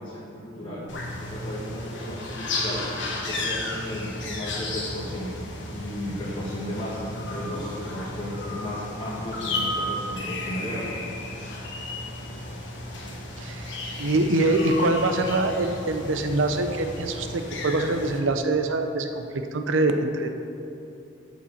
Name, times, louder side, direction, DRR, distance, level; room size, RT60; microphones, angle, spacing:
voice 1, 0.0-2.9 3.2-5.3 5.7-10.9, equal, 25° left, -8 dB, 1.3 m, -34 dB
sound 1, 0.9-18.2, left 2 dB, 65° left, 1.3 m, -33 dB
voice 2, 13.4-20.3, right 2 dB, 75° right, 7 dB, 0.6 m, -24 dB
6.9 x 5.2 x 7.2 m, 2.8 s
head